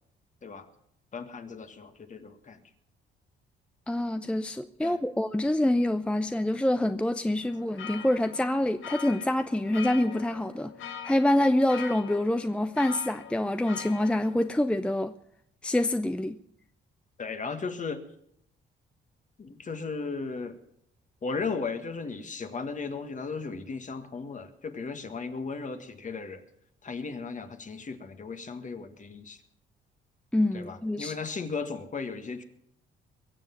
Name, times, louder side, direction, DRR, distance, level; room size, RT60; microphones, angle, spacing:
voice 1, 1.1-2.6 4.8-5.0 17.2-18.0 19.4-20.6 21.2-26.4 26.8-29.4 30.5-32.4, left 4 dB, 40° left, 1.7 m, -36 dB
voice 2, 3.9-15.1 15.6-16.4 30.3-31.1, left 1 dB, 5° left, 0.6 m, -26 dB
sound 1, 7.4-14.6, left 8 dB, 80° left, 1.6 m, -43 dB
22.5 x 7.5 x 7.1 m
cardioid pair, 90°, 20 cm